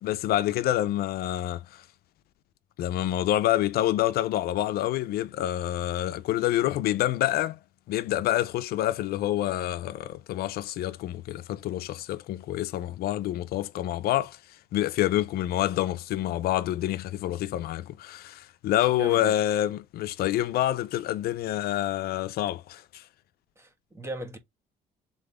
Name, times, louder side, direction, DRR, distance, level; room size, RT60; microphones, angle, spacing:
voice 1, 0.0-1.8 2.8-7.6 7.9-14.4 14.7-23.0, left 13 dB, 65° left, 0.4 m, -27 dB
voice 2, 18.9-19.4 23.6-24.4, equal, 15° right, 1.5 m, -38 dB
4.0 x 3.6 x 3.4 m
cardioid pair, 110°, 17 cm